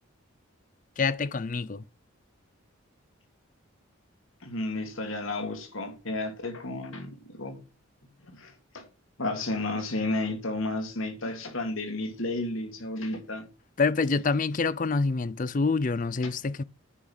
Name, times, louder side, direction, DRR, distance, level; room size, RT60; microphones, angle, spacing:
voice 1, 1.0-1.8 13.8-16.6, left 4 dB, 35° left, 0.4 m, -26 dB
voice 2, 4.4-7.6 8.3-8.9 9.2-13.5 16.2-16.3, left 2 dB, 70° left, 2.4 m, -32 dB
9.9 x 5.6 x 6.3 m
head